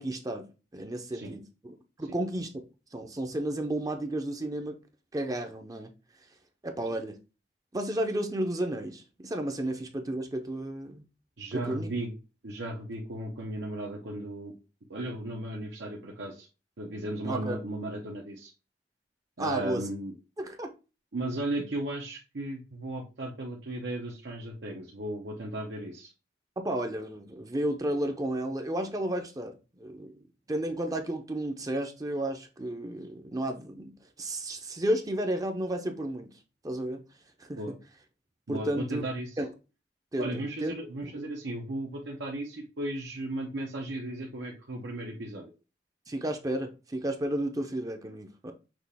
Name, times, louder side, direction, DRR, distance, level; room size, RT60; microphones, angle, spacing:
voice 1, 0.0-2.5 2.9-4.8 5.1-5.9 6.6-7.2 7.7-11.0 11.5-11.9 17.2-17.6 19.4-19.8 20.4-20.7 26.6-36.3 36.6-37.0 37.4-37.6 38.5-39.0 39.4-39.5 40.1-40.7 46.1-48.5, right 1 dB, 20° right, 0.5 m, -32 dB
voice 2, 11.4-12.1 12.4-14.5 14.9-16.5 16.8-18.5 19.4-20.1 21.1-26.1 37.6-37.7 38.5-39.3 40.2-45.5, right 1 dB, 80° right, 0.8 m, -35 dB
6.0 x 2.5 x 3.4 m
head